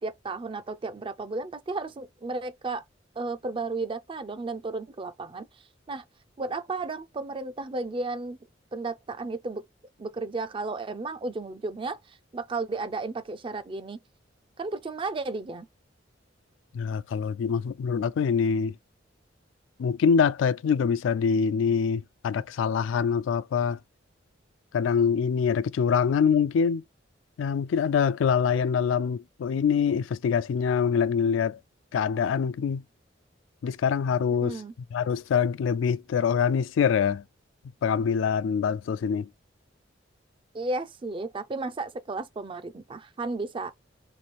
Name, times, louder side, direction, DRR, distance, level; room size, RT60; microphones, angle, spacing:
voice 1, 0.0-2.8 3.2-5.5 5.9-6.0 6.4-8.4 8.7-9.6 10.0-14.0 14.6-15.7 34.3-34.7 40.5-43.7, right 3 dB, 25° right, 0.4 m, -33 dB
voice 2, 16.7-18.7 19.8-23.8 24.7-26.8 27.4-31.6 31.9-32.8 33.6-34.6 34.9-37.2 37.8-39.3, left 6 dB, 85° left, 0.3 m, -24 dB
3.1 x 3.0 x 4.2 m
head